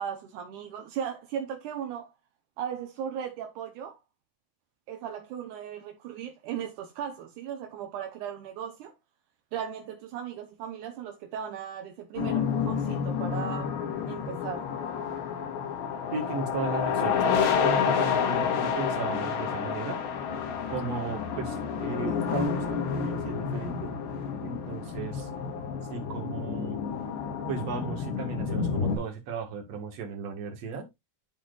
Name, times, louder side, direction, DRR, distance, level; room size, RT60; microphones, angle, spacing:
voice 1, 0.0-2.1 2.6-4.0 4.9-8.9 9.5-13.8 14.1-14.7, right 8 dB, 75° right, 1.8 m, -37 dB
sound 1, 12.2-29.0, left 6 dB, 85° left, 3.9 m, -29 dB
voice 2, 16.1-17.2 17.6-20.0 20.7-23.9 24.4-25.3 25.9-26.8 27.5-30.9, right 4 dB, 50° right, 2.3 m, -35 dB
12.5 x 4.5 x 2.5 m
omnidirectional pair, 4.9 m